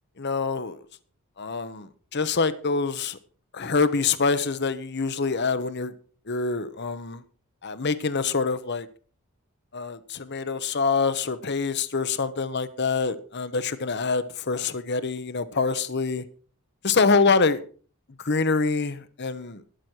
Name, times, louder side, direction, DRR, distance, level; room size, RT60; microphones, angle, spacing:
voice 1, 0.2-0.8 1.4-3.2 3.5-5.9 6.3-7.2 7.6-8.9 9.7-16.2 16.8-17.6 18.2-19.6, left 4 dB, 50° left, 0.9 m, -25 dB
12.5 x 11.0 x 4.5 m
head